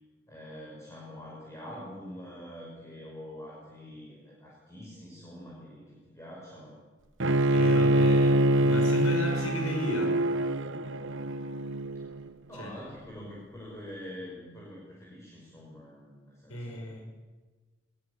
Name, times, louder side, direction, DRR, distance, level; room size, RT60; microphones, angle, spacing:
voice 1, 0.3-6.8 12.5-16.9, equal, 15° left, -4 dB, 6.0 m, -45 dB
Bowed string instrument, 7.2-12.3, right 1 dB, 60° right, 1.2 m, -25 dB
voice 2, 7.5-10.2 12.5-12.7 13.1-13.3 16.5-17.0, left 1 dB, 85° left, 2 dB, 5.6 m, -35 dB
22.0 x 21.5 x 8.4 m, 1.3 s
head